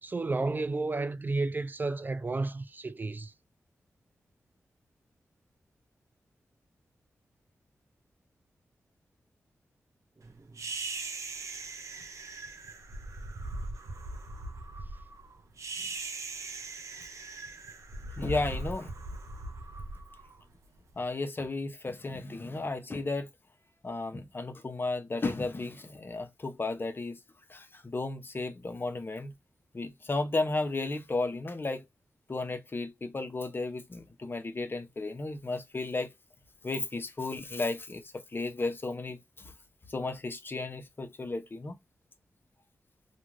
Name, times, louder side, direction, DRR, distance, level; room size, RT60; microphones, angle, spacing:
voice 1, 0.0-3.3 10.2-10.6 15.8-15.9, right 3 dB, 35° right, 0.3 m, -32 dB
sound 1, 10.6-20.9, right 3 dB, 70° right, 0.6 m, -40 dB
voice 2, 18.2-18.9 21.0-23.3 23.8-27.2 27.5-29.3 29.7-31.8 32.3-36.1 36.6-39.5 39.9-41.8, left 3 dB, 40° left, 0.7 m, -34 dB
2.4 x 2.3 x 3.1 m
cardioid pair, 50°, 6 cm